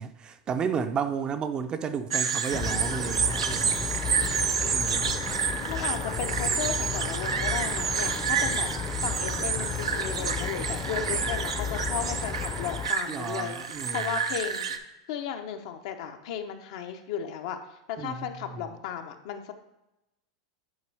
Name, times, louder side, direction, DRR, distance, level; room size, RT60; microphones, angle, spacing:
voice 1, 0.0-3.9 4.7-5.0 13.1-14.2 18.0-18.3, right 6 dB, 30° right, 0.5 m, -32 dB
sound 1, 2.1-14.8, right 6 dB, 90° right, 0.5 m, -29 dB
sound 2, 2.5-12.9, left 6 dB, 25° left, 0.6 m, -34 dB
voice 2, 4.6-5.1 5.7-8.7 9.0-14.7 15.1-17.6 17.9-19.5, left 8 dB, 65° left, 0.7 m, -35 dB
9.6 x 4.4 x 3.4 m
hypercardioid pair, 105°, 3 cm